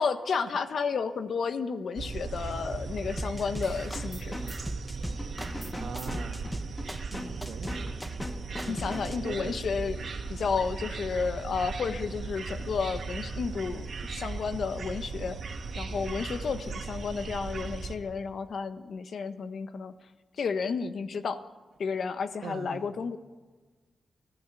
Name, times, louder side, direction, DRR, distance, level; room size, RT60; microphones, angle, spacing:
voice 1, 0.0-4.6 8.7-15.4 15.7-19.9 20.4-21.4 21.8-23.2, left 5 dB, 65° left, 9 dB, 1.4 m, -32 dB
sound 1, 2.0-18.0, right 4 dB, 60° right, 2.9 m, -37 dB
sound 2, 3.2-4.2 4.5-9.2, equal, ahead, 1.2 m, -39 dB
sound 3, 3.6-9.4, left 1 dB, 20° left, 2.0 m, -42 dB
voice 2, 5.8-6.5 7.1-7.9 8.7-9.6 22.4-22.9, right 5 dB, 90° right, 3 dB, 2.8 m, -41 dB
29.5 x 15.5 x 9.2 m, 1.4 s
wide cardioid pair, 135°, 0 cm